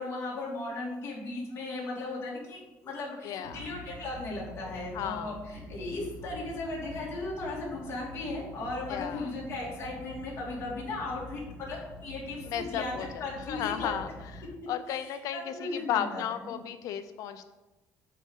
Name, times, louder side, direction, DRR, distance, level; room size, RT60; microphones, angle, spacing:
voice 1, 0.0-13.9 14.9-16.5, left 2 dB, 40° left, -4 dB, 2.5 m, -37 dB
voice 2, 3.2-3.6 4.9-5.3 8.9-9.3 12.5-14.1 14.7-17.5, left 10 dB, 70° left, 10 dB, 0.6 m, -34 dB
sound 1, 3.4-14.5, left 1 dB, 85° right, 1.8 m, -46 dB
8.3 x 3.6 x 5.5 m, 1.1 s
cardioid pair, 165°, 6 cm